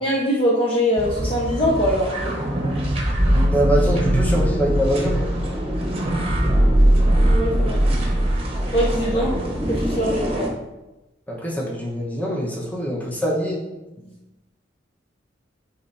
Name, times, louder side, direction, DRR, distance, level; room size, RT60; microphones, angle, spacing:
voice 1, 0.0-2.3 7.3-7.8 8.7-9.3 9.7-10.5, equal, 30° left, -4 dB, 0.8 m, -22 dB
sound 1, 1.0-10.5, right 1 dB, 30° right, 1.0 m, -21 dB
voice 2, 3.3-5.3 9.1-9.2 11.3-13.6, equal, 10° left, -3 dB, 1.1 m, -24 dB
9.1 x 4.1 x 2.7 m, 1.0 s
head